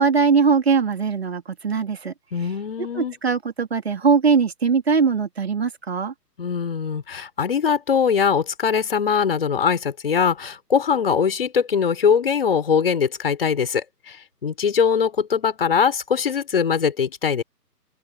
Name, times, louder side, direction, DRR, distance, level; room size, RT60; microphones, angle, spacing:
voice 1, 0.0-2.1 2.9-6.1, right 5 dB, 40° right, 3.1 m, -20 dB
voice 2, 2.3-3.1 6.4-17.4, left 6 dB, 35° left, 5.0 m, -22 dB
open air
figure-of-eight pair, 150°, 49 cm